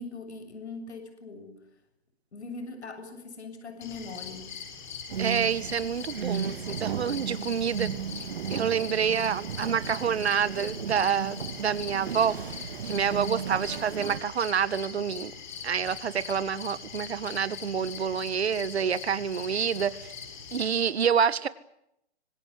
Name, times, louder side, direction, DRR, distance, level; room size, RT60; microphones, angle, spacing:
voice 1, 0.0-1.6 2.3-4.5, left 3 dB, 80° left, 7.5 m, -41 dB
sound 1, 3.8-20.7, left 7 dB, 45° left, 7.0 m, -42 dB
sound 2, 5.1-14.2, right 7 dB, 55° right, 1.7 m, -35 dB
voice 2, 5.2-8.2 8.5-12.4 12.8-15.3 15.6-20.1 20.5-21.5, right 7 dB, 75° right, 1.7 m, -28 dB
25.5 x 19.0 x 9.6 m
hypercardioid pair, 170°, 33 cm